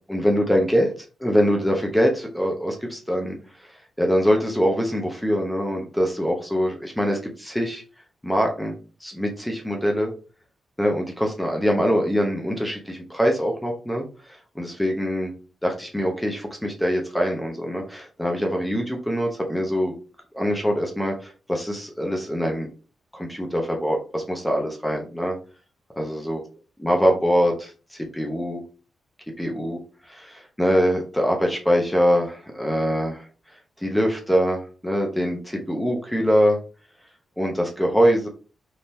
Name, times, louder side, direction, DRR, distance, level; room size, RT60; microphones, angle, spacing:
voice 1, 0.1-0.9 1.2-3.4 4.0-7.8 8.2-10.1 10.8-15.3 15.6-19.9 20.3-22.7 23.1-25.4 26.0-26.4 26.8-28.6 29.4-29.8 30.1-33.3 33.8-36.6 37.4-38.3, equal, 5° left, 1 dB, 0.8 m, -23 dB
3.5 x 2.9 x 2.7 m, 0.35 s
cardioid pair, 105°, 0 cm